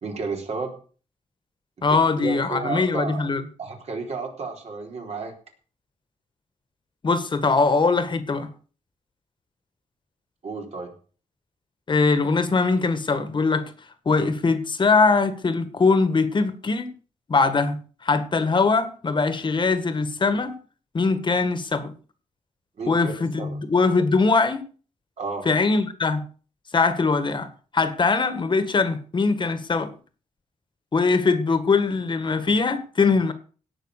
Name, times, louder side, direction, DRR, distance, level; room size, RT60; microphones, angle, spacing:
voice 1, 0.0-0.7 1.8-3.2 3.6-5.3 10.4-10.9 22.8-23.1 23.4-23.6 25.2-25.5, right 4 dB, 60° right, 1 dB, 3.8 m, -32 dB
voice 2, 1.8-3.4 7.0-8.5 11.9-13.7 14.0-16.9 17.3-20.6 20.9-21.9 22.9-24.6 25.4-26.2 26.7-27.5 27.7-29.9 30.9-33.3, left 4 dB, 40° left, 11 dB, 1.7 m, -21 dB
17.0 x 6.2 x 6.6 m, 0.40 s
wide cardioid pair, 125°, 12 cm